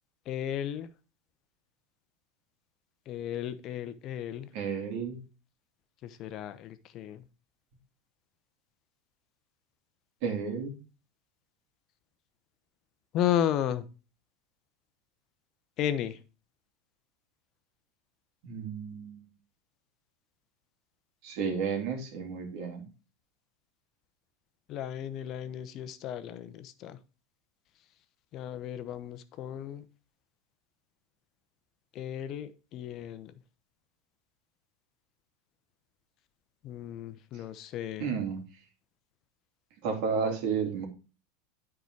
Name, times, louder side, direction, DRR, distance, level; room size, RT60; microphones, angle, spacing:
voice 1, 0.3-0.9 3.1-4.5 6.0-7.2 13.1-13.9 15.8-16.2 24.7-27.0 28.3-29.8 31.9-33.3 36.6-38.1, left 10 dB, 50° left, 12 dB, 0.9 m, -34 dB
voice 2, 4.5-5.2 10.2-10.7 18.4-19.3 21.2-22.8 38.0-38.4 39.8-40.9, right 6 dB, 60° right, 2 dB, 2.8 m, -32 dB
9.3 x 4.9 x 4.6 m, 0.34 s
hypercardioid pair, 95°, 0 cm